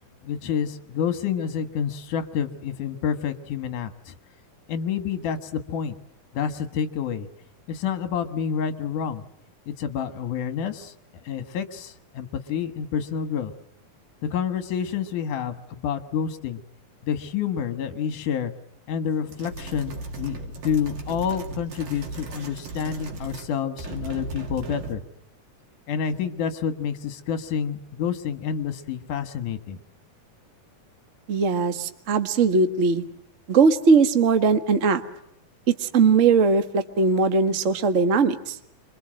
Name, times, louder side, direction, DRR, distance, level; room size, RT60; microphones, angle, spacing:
voice 1, 0.2-4.1 4.7-6.0 6.3-7.3 7.7-9.2 9.8-10.9 11.3-13.5 14.3-16.6 17.0-18.5 18.9-25.0 25.9-29.8, left 8 dB, 70° left, 9 dB, 2.9 m, -28 dB
sound 1, 19.3-23.5 23.8-25.1, right 3 dB, 85° right, 4.6 m, -36 dB
voice 2, 31.3-33.0 33.5-35.0 35.7-38.6, right 4 dB, 55° right, 8 dB, 0.8 m, -20 dB
27.0 x 24.0 x 7.6 m, 0.75 s
omnidirectional pair, 3.9 m